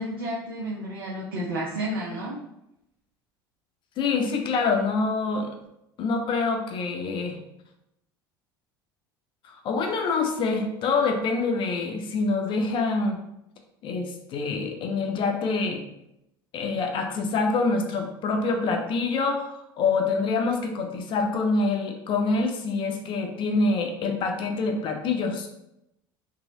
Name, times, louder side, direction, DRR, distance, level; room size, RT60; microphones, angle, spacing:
voice 1, 0.0-2.4, right 1 dB, 85° right, -5 dB, 0.6 m, -31 dB
voice 2, 4.0-5.5 6.0-7.4 9.4-13.2 13.8-15.8 16.5-25.5, left 4 dB, 45° left, 3 dB, 0.5 m, -26 dB
3.0 x 2.6 x 2.6 m, 0.82 s
hypercardioid pair, 75°, 12 cm